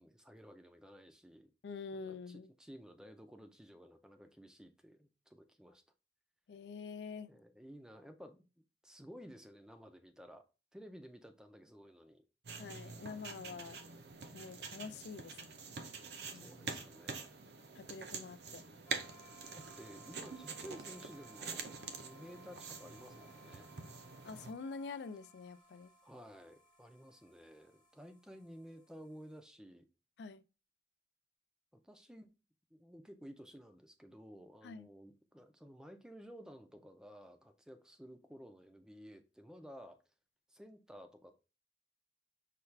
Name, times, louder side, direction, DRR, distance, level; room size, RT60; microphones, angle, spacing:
voice 1, 0.0-1.5 1.9-5.8 7.3-8.4 8.8-10.5 10.7-12.2 16.3-17.3 19.5-23.7 26.0-29.9 31.8-32.3 32.7-40.0 40.5-41.5, equal, 5° right, 0.4 m, -54 dB
voice 2, 1.6-2.5 6.5-7.3 12.6-13.8 14.3-15.6 16.3-16.7 17.7-18.6 24.2-25.9 30.2-30.4 34.6-34.9, left 5 dB, 70° left, 0.3 m, -46 dB
sound 1, 12.4-24.5, right 4 dB, 65° right, 0.6 m, -46 dB
sound 2, 18.9-29.4, right 1 dB, 25° left, 0.9 m, -62 dB
5.8 x 2.3 x 3.2 m
head